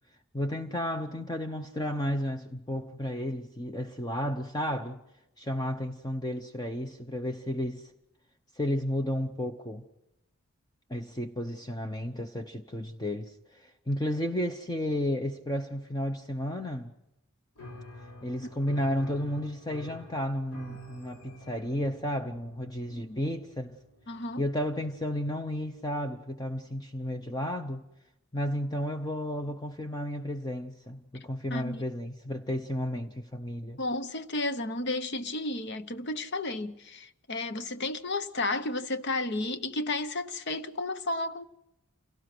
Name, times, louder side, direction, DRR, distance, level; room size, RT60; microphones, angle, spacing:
voice 1, 0.3-5.0 5.4-7.9 8.5-9.8 10.9-16.9 18.2-23.8 24.4-27.9 28.3-33.8, equal, 20° left, 0.8 m, -32 dB
Piano, 17.5-26.0, equal, 85° left, 5.0 m, -49 dB
voice 2, 24.1-24.4 31.5-31.9 33.8-41.5, left 2 dB, 55° left, 0.9 m, -32 dB
28.0 x 18.0 x 6.1 m
head